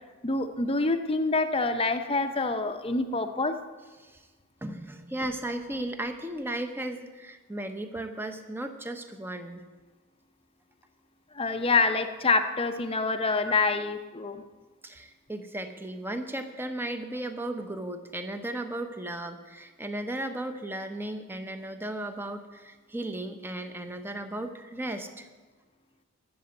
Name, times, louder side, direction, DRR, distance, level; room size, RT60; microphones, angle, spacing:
voice 1, 0.2-3.6 11.3-14.4, left 3 dB, 25° left, 8 dB, 0.7 m, -26 dB
voice 2, 4.6-9.7 13.5-13.6 14.8-25.3, right 1 dB, 10° right, 7 dB, 0.8 m, -35 dB
13.0 x 7.7 x 8.1 m, 1.3 s
head